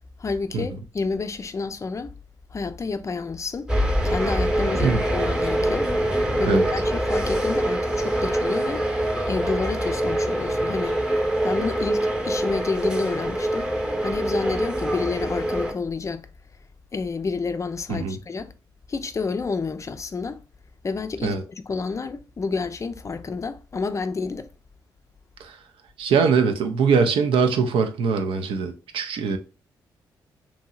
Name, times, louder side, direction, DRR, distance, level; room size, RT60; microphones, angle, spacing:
voice 1, 0.2-2.1 2.5-3.7 4.0-5.9 6.4-11.0 11.4-13.7 14.0-16.3 16.9-18.5 18.9-20.4 20.8-24.5, left 4 dB, 35° left, 0.4 m, -29 dB
sound 1, 3.7-15.7, right 1 dB, 5° right, 0.8 m, -24 dB
voice 2, 26.0-29.4, right 5 dB, 70° right, 0.5 m, -22 dB
2.9 x 2.7 x 2.3 m
supercardioid pair, 50°, 9 cm